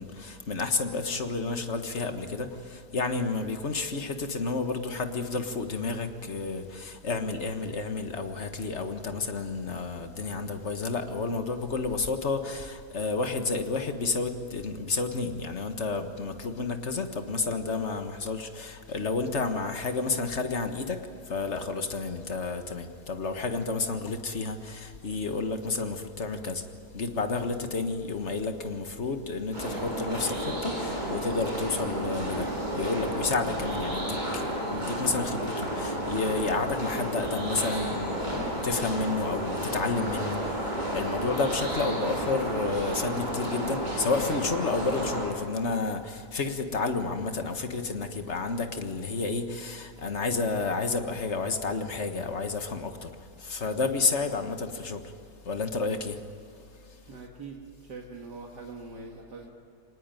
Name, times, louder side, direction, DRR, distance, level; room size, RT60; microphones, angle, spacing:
voice 1, 0.0-21.0 21.3-26.6 26.9-53.1 53.4-55.0 55.5-56.2, left 3 dB, 45° left, 6 dB, 1.8 m, -31 dB
sound 1, 29.5-45.2, right 1 dB, 25° right, 7.2 m, -32 dB
voice 2, 57.1-59.5, right 4 dB, 85° right, 0 dB, 2.4 m, -43 dB
25.5 x 19.0 x 9.2 m, 2.3 s
omnidirectional pair, 1.8 m